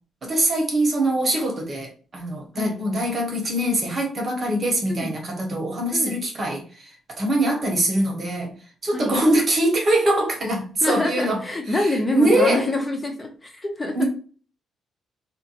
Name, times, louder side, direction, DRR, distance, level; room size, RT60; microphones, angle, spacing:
voice 1, 0.2-8.5 8.8-11.4 11.7-12.7 13.9-14.0, right 1 dB, 45° right, 1.1 m, -23 dB
voice 2, 10.8-14.0, left 2 dB, 25° left, 0.8 m, -26 dB
2.6 x 2.2 x 2.5 m
hypercardioid pair, 45°, 0 cm